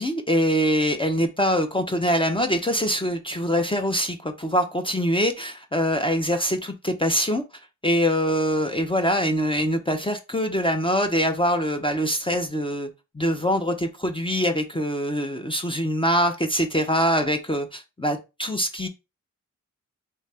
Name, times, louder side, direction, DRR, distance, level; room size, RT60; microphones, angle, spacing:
voice 1, 0.0-7.4 7.8-12.9 13.1-18.9, equal, 15° left, 5 dB, 0.6 m, -24 dB
3.3 x 2.6 x 3.3 m, 0.26 s
cardioid pair, 50°, 33 cm